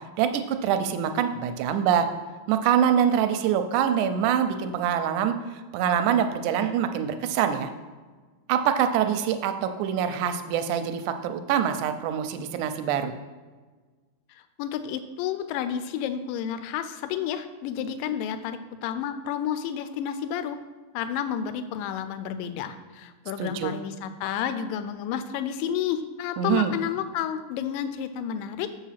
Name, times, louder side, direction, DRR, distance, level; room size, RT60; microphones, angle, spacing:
voice 1, 0.2-2.1 2.5-7.7 8.5-13.1 23.4-23.7 26.4-26.7, right 8 dB, 80° right, 8 dB, 1.8 m, -25 dB
voice 2, 14.6-20.6 20.9-28.7, left 9 dB, 80° left, 10 dB, 2.2 m, -31 dB
7.2 x 4.9 x 5.7 m, 1.4 s
omnidirectional pair, 4.0 m